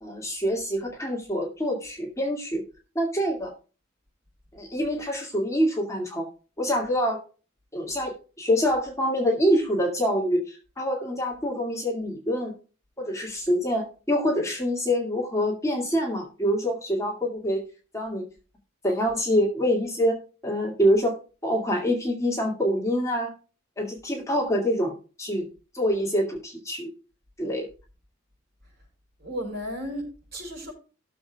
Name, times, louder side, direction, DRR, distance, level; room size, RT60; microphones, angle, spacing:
voice 1, 0.0-2.6 3.0-3.5 4.5-6.3 6.6-7.2 7.7-12.5 13.0-17.6 17.9-18.3 18.8-21.2 21.4-23.3 23.8-24.9 25.2-25.5 25.7-26.9 27.4-27.7, equal, 15° left, -1 dB, 2.2 m, -25 dB
voice 2, 29.2-30.7, equal, 50° right, 1 dB, 5.5 m, -34 dB
17.5 x 7.1 x 2.3 m, 0.34 s
head